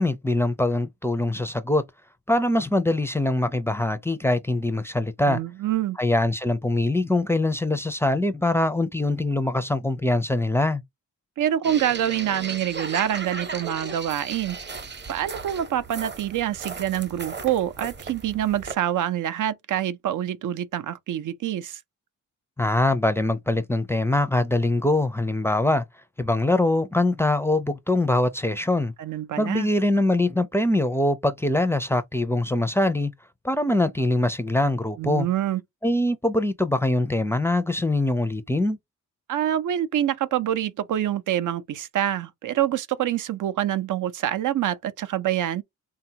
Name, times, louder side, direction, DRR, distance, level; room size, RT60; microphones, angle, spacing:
voice 1, 0.0-1.8 2.3-5.4 6.0-10.8 22.6-25.8 26.2-28.9 29.4-33.1 33.4-35.3 35.8-38.8, left 1 dB, 10° left, 0.4 m, -23 dB
voice 2, 5.3-6.0 11.4-14.6 15.1-21.8 29.0-29.7 35.0-35.6 39.3-45.6, right 11 dB, 75° right, 0.5 m, -26 dB
sound 1, 11.6-18.7, right 4 dB, 35° right, 0.8 m, -36 dB
3.5 x 2.3 x 2.7 m
cardioid pair, 80°, 31 cm